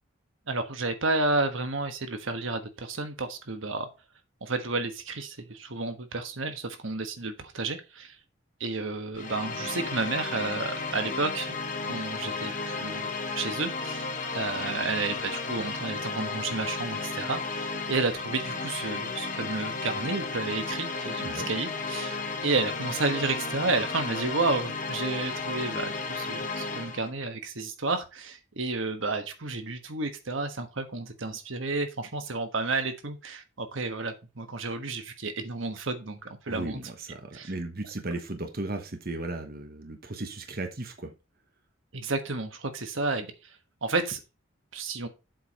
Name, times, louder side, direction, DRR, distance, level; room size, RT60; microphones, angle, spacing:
voice 1, 0.5-3.9 4.4-8.2 8.6-11.5 11.9-36.2 36.4-36.8 37.3-37.5 41.9-44.2 44.7-45.1, right 3 dB, 70° right, 7 dB, 1.3 m, -31 dB
sound 1, 9.1-27.1, left 4 dB, 40° left, 1.1 m, -33 dB
voice 2, 36.5-41.1, right 2 dB, 45° right, 5 dB, 1.1 m, -36 dB
7.9 x 4.9 x 5.1 m, 0.28 s
head